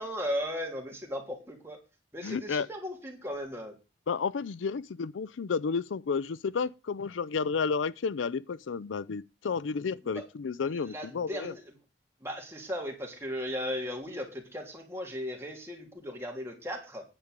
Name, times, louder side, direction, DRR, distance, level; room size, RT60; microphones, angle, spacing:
voice 1, 0.0-1.8 2.1-3.7 10.0-10.2 10.7-11.7 12.2-17.0, equal, 15° right, 3.2 m, -36 dB
voice 2, 2.2-2.7 4.1-11.5, left 5 dB, 90° left, 0.5 m, -31 dB
9.9 x 5.1 x 8.2 m
head